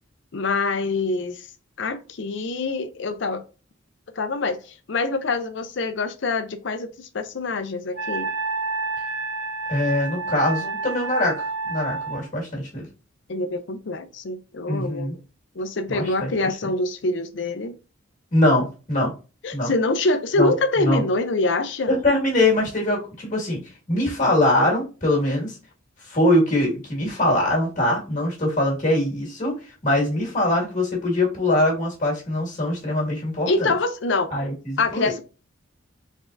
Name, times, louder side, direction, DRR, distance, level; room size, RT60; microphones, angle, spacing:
voice 1, 0.3-1.5 1.8-3.4 4.2-8.3 13.3-15.1 15.5-17.8 19.4-21.9 33.5-34.3 34.8-35.2, left 3 dB, 60° left, 0.5 m, -25 dB
Wind instrument woodwind instrument, 7.9-12.2, right 3 dB, 80° right, 1.4 m, -29 dB
voice 2, 9.7-12.9 14.7-15.1 15.9-16.5 18.3-19.1 19.5-19.7 20.4-20.5 20.8-21.0 21.9-23.6 23.9-25.6 26.0-33.7 34.3-35.1, left 1 dB, 40° left, 1.8 m, -22 dB
4.0 x 3.5 x 2.6 m
head